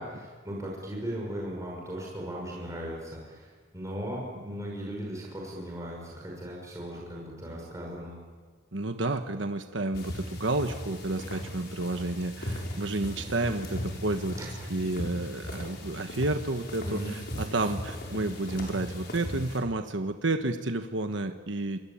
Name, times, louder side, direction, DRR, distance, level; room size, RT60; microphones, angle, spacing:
voice 1, 0.0-3.5 3.7-8.1 14.4-14.7 16.8-17.1, equal, 15° right, -2 dB, 5.6 m, -37 dB
voice 2, 8.7-21.8, right 2 dB, 70° right, 7 dB, 1.3 m, -31 dB
sound 1, 9.9-19.6, left 1 dB, 55° left, 6.1 m, -38 dB
28.0 x 22.5 x 8.7 m, 1.5 s
head